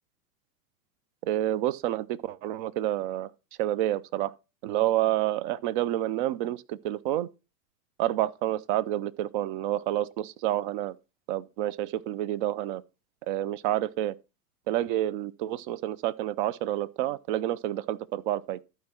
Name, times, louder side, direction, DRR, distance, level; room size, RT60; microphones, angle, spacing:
voice 1, 1.2-3.3 3.6-4.3 4.6-7.3 8.0-11.0 11.3-12.8 13.3-14.1 14.7-18.6, right 13 dB, 35° right, 0.4 m, -29 dB
12.0 x 4.8 x 4.3 m
hypercardioid pair, 105°, 46 cm